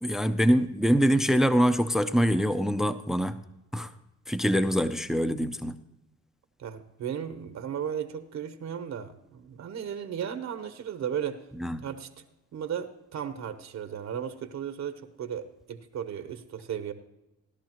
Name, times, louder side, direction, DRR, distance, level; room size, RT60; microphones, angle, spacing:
voice 1, 0.0-3.4 3.7-3.9 4.3-5.8 11.6-11.8, equal, ahead, 11 dB, 0.5 m, -24 dB
voice 2, 6.6-11.4 11.8-12.1 12.5-16.9, right 8 dB, 60° right, 9 dB, 0.9 m, -35 dB
16.5 x 11.5 x 3.0 m, 0.94 s
cardioid pair, 90°, 30 cm